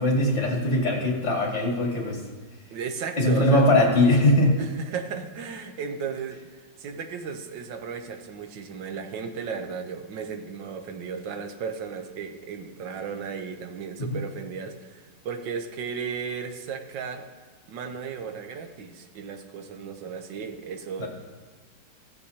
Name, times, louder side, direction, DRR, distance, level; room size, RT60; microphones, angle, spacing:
voice 1, 0.0-2.2 3.2-4.7 21.0-21.1, left 1 dB, 35° left, -1 dB, 2.5 m, -21 dB
voice 2, 2.7-3.7 4.6-6.5 6.8-17.3 17.7-21.1, right 6 dB, 70° right, 7 dB, 1.5 m, -35 dB
21.5 x 7.4 x 2.9 m, 1.3 s
omnidirectional pair, 2.1 m